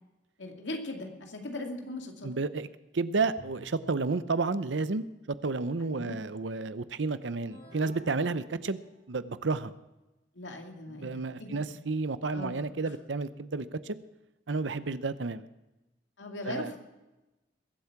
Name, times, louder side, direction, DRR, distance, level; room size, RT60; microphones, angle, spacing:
voice 1, 0.4-2.3 5.8-6.2 10.4-11.6 12.3-12.6 16.2-16.8, left 2 dB, 85° left, 3 dB, 2.4 m, -39 dB
voice 2, 2.2-2.7 2.9-5.0 5.4-8.8 9.1-9.7 11.0-14.0 14.5-15.4 16.4-16.7, right 3 dB, 90° right, 14 dB, 0.7 m, -31 dB
Bowed string instrument, 3.4-4.3, right 1 dB, 50° left, 5.8 m, -50 dB
sound 1, 7.5-9.3, equal, 70° left, 6.9 m, -53 dB
22.0 x 8.3 x 5.9 m, 1.0 s
head